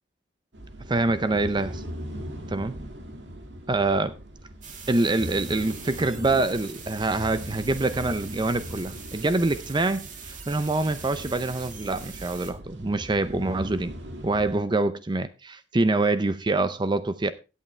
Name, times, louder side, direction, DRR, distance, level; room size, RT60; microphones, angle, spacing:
sound 1, 0.5-14.6, equal, 70° right, 2.1 m, -40 dB
voice 1, 0.9-1.8 2.5-2.8 3.7-4.2 4.9-13.9 14.2-17.3, right 2 dB, 25° right, 0.5 m, -25 dB
sound 2, 4.6-12.5, right 6 dB, 45° right, 2.1 m, -43 dB
16.5 x 8.4 x 3.3 m
head